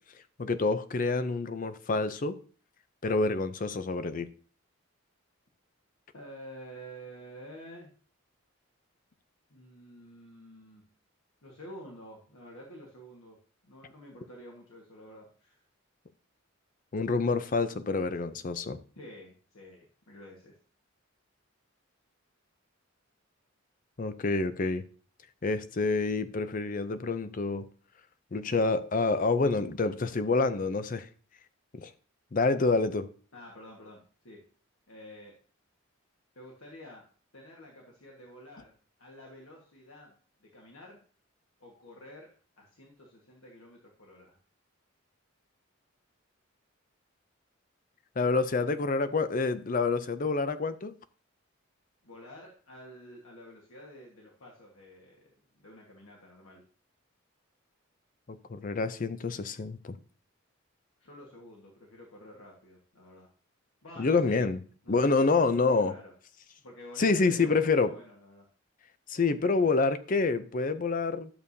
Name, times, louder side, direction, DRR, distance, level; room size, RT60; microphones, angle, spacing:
voice 1, 0.4-2.4 3.0-4.3 16.9-18.8 24.0-24.8 25.4-27.7 28.3-31.1 31.7-31.9 32.3-33.1 48.2-50.9 58.3-60.0 64.0-64.6 64.9-65.9 67.0-67.9 69.1-71.3, left 3 dB, 40° left, 0.5 m, -27 dB
voice 2, 6.1-7.9 9.5-10.8 11.4-13.4 13.6-15.6 18.9-20.5 33.3-34.4 34.9-35.4 36.3-37.1 37.3-38.7 39.0-40.1 40.4-41.0 41.6-44.4 52.0-56.6 61.0-63.3 63.8-64.5 64.8-65.2 65.7-66.1 66.6-68.5, equal, 90° left, 1.5 m, -49 dB
11.0 x 6.8 x 2.7 m
head